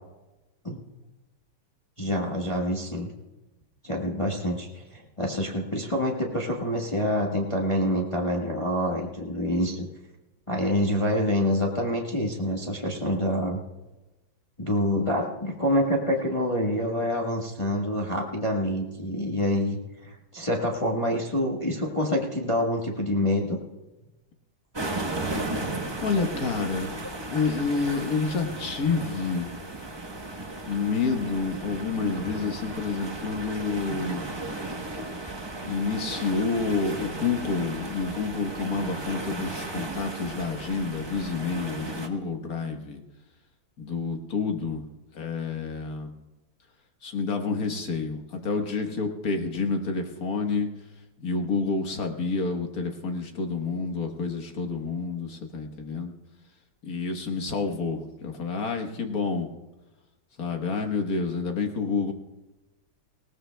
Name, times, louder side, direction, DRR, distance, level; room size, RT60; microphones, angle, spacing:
voice 1, 2.0-3.1 3.8-9.8 10.5-13.6 14.6-23.6, equal, 20° left, -1 dB, 1.1 m, -26 dB
sound 1, 24.7-42.1, right 2 dB, 25° right, 0.5 m, -35 dB
voice 2, 26.0-29.5 30.7-34.3 35.6-43.0 43.8-44.9 45.1-46.1 47.0-50.7 51.2-56.1 56.8-59.5 60.4-62.1, left 4 dB, 50° left, 4 dB, 1.6 m, -29 dB
20.0 x 17.5 x 2.2 m, 1.1 s
omnidirectional pair, 2.2 m